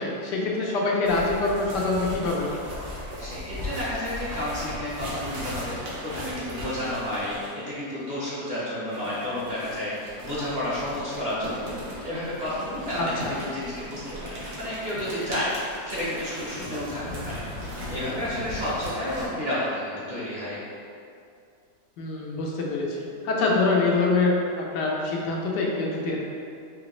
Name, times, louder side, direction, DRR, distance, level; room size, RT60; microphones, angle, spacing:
voice 1, 0.0-2.6 13.0-13.3 22.0-23.0 23.2-26.2, left 3 dB, 90° left, -2 dB, 1.4 m, -25 dB
sound 1, 1.0-7.6 8.9-19.3, equal, 55° right, 1.4 m, -37 dB
voice 2, 3.2-5.7 6.0-15.5 15.8-20.6, left 1 dB, 35° right, -9 dB, 0.9 m, -31 dB
5.0 x 3.0 x 3.1 m, 2.4 s
omnidirectional pair, 1.8 m